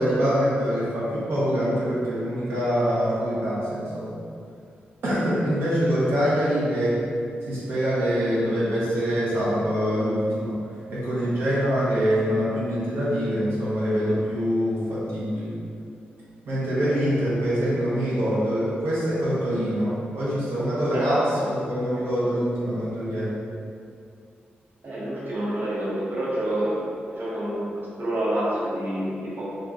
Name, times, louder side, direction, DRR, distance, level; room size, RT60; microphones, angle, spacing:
voice 1, 0.0-4.2 5.0-7.0 7.5-10.6 10.9-15.6 16.5-21.2 21.5-23.3, equal, 90° right, -9 dB, 0.8 m, -24 dB
voice 2, 20.9-21.5 24.8-27.7 28.0-29.4, right 1 dB, 60° right, -7 dB, 0.8 m, -28 dB
2.8 x 2.5 x 3.4 m, 2.4 s
cardioid pair, 85°, 4 cm